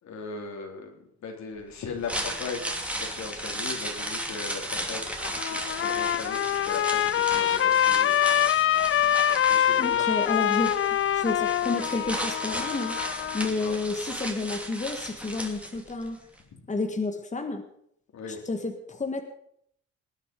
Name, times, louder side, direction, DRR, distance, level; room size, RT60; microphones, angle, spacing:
voice 1, 0.0-5.2 5.5-8.5 8.8-9.1 9.4-10.1 13.5-13.7 18.1-18.4, left 5 dB, 65° left, 3 dB, 3.5 m, -38 dB
sound 1, 1.9-16.1 16.4-16.5, right 1 dB, 5° right, 2.7 m, -35 dB
Trumpet, 5.1-13.5, left 10 dB, 45° left, 0.5 m, -25 dB
voice 2, 9.8-10.7 11.1-13.0 13.3-16.2 16.7-17.6 18.5-19.2, left 3 dB, 25° left, 4 dB, 1.8 m, -30 dB
20.0 x 9.3 x 5.3 m, 0.70 s
cardioid pair, 90°, 30 cm